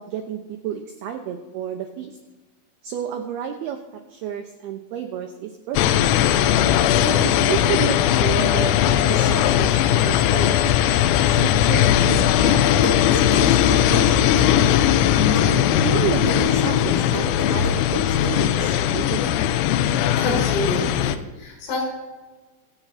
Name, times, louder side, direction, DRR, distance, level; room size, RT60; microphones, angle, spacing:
voice 1, 0.0-2.2 2.8-3.8 4.1-5.8 7.0-8.7 9.0-10.5 11.3-12.7 13.1-14.8 15.4-19.4, right 9 dB, 85° right, 4 dB, 2.2 m, -31 dB
sound 1, 5.8-21.2, left 11 dB, 85° left, 3.3 m, -19 dB
sound 2, 12.8-14.8 15.3-15.5 16.3-16.4 17.1-18.3, left 1 dB, 5° left, 1.8 m, -30 dB
voice 2, 20.1-21.8, left 2 dB, 70° left, -1 dB, 6.6 m, -27 dB
25.0 x 11.5 x 2.8 m, 1.2 s
omnidirectional pair, 5.8 m